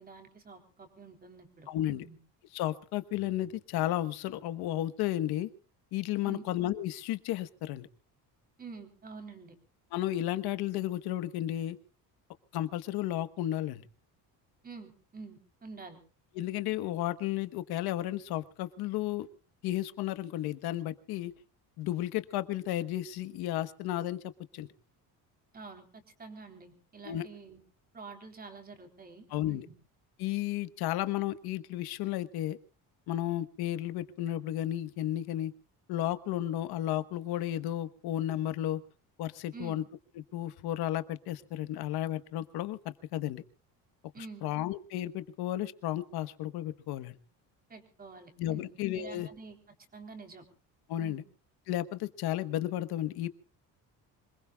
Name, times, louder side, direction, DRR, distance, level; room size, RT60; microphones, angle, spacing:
voice 1, 0.0-2.2 6.2-6.4 8.6-9.5 14.6-16.0 25.5-25.8 26.2-27.6 27.9-29.7 39.5-39.8 44.1-44.5 47.7-49.6 49.9-50.4 51.0-51.2, right 4 dB, 25° right, 4 dB, 3.7 m, -47 dB
voice 2, 1.7-2.0 2.5-5.5 5.9-7.9 9.9-11.8 12.5-13.9 16.3-19.3 19.6-21.3 21.8-24.7 27.0-27.2 29.3-29.7 30.2-32.6 33.1-35.5 35.9-38.8 39.2-39.8 40.1-43.4 44.2-47.1 48.4-49.3 50.9-51.2 51.7-53.3, left 13 dB, 80° left, 12 dB, 1.3 m, -33 dB
26.5 x 20.5 x 2.4 m, 0.38 s
cardioid pair, 140°, 37 cm